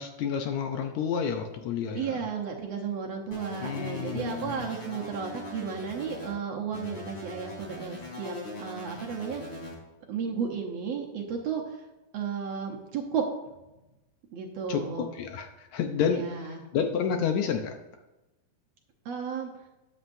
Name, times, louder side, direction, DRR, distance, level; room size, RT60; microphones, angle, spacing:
voice 1, 0.0-2.2 3.6-4.7 14.7-17.8, left 7 dB, 75° left, 5 dB, 1.8 m, -30 dB
voice 2, 1.9-9.4 10.1-11.8 12.1-13.2 14.3-15.1 16.0-16.6 19.0-19.5, right 6 dB, 65° right, 1 dB, 1.7 m, -33 dB
sound 1, 3.3-6.3 6.7-9.7, left 1 dB, 35° left, 4.7 m, -41 dB
13.0 x 10.0 x 2.6 m, 1.0 s
omnidirectional pair, 3.9 m